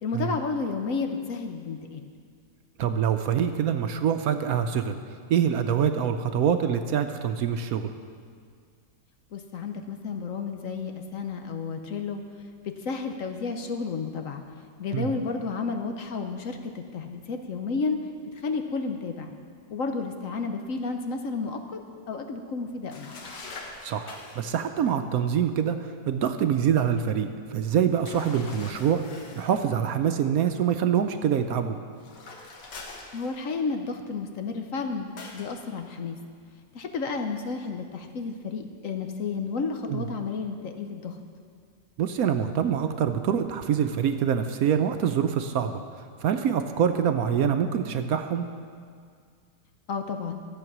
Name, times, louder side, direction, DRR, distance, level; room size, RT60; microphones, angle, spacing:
voice 1, 0.0-2.1 9.3-12.2 12.6-14.4 14.8-18.0 18.3-19.3 19.7-21.8 22.1-23.1 33.1-36.2 36.7-41.2 49.9-50.4, left 4 dB, 60° left, 5 dB, 1.0 m, -32 dB
voice 2, 2.8-5.0 5.3-7.9 14.9-15.1 23.8-31.8 39.9-40.0 42.0-45.8 46.2-48.5, right 8 dB, 70° right, 7 dB, 1.0 m, -25 dB
sound 1, 22.9-24.5 28.0-29.6 32.0-33.7 35.2-35.5, left 3 dB, 85° left, 1.9 m, -43 dB
14.0 x 7.9 x 6.0 m, 2.1 s
omnidirectional pair, 1.8 m